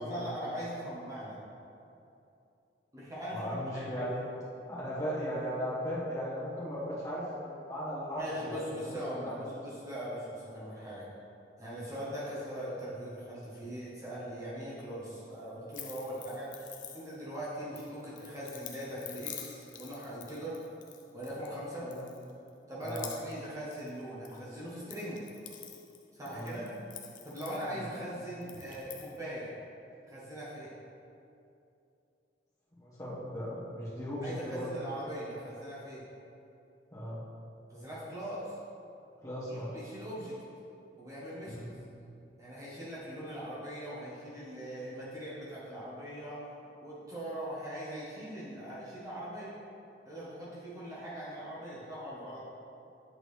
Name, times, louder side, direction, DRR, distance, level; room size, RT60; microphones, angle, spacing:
voice 1, 0.0-1.4 2.9-4.2 8.2-11.1 11.6-16.7 16.9-20.6 21.1-21.9 22.7-25.2 26.1-26.7 27.2-29.5 30.1-30.7 34.2-36.0 37.7-38.5 39.5-40.3 41.0-41.7 42.4-46.5 46.8-49.6 50.0-52.5, equal, 20° right, -8 dB, 1.0 m, -40 dB
voice 2, 3.3-4.2 4.7-9.4 9.7-9.8 21.8-22.0 22.8-23.0 26.3-26.5 27.7-27.9 32.8-34.7 36.9-37.2 39.2-39.7 41.4-41.7, equal, 20° left, -9 dB, 1.3 m, -37 dB
sound 1, 15.7-17.4 17.8-21.6 21.9-22.5 22.8-23.5 23.7-24.4 24.7-28.0 28.4-29.2, left 9 dB, 45° left, 0.5 m, -48 dB
8.3 x 3.7 x 3.2 m, 2.7 s
head